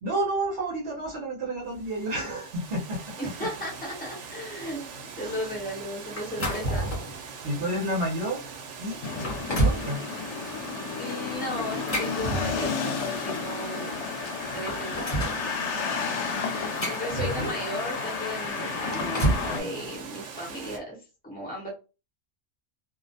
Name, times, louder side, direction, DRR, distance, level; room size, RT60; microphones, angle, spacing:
voice 1, 0.0-3.0 5.2-5.5 7.4-8.4 8.8-9.1 9.6-10.0 17.1-17.5 18.8-19.9, right 1 dB, 60° right, -2 dB, 0.8 m, -31 dB
Water, 1.7-20.8, right 5 dB, 90° right, 0.9 m, -42 dB
voice 2, 3.2-4.9 5.1-6.9 11.0-13.9 14.5-15.6 16.8-21.0 21.2-21.7, equal, 10° left, -3 dB, 0.9 m, -36 dB
sound 1, 6.2-7.2 7.8-7.9 8.6-8.7 9.1-9.9 11.6-12.9 14.0-14.1 14.4-15.4 16.3-17.7 18.7-19.5, right 1 dB, 35° left, 0.9 m, -29 dB
sound 2, 9.0-19.6, left 5 dB, 80° left, 0.9 m, -32 dB
2.4 x 2.0 x 2.6 m, 0.31 s
omnidirectional pair, 1.2 m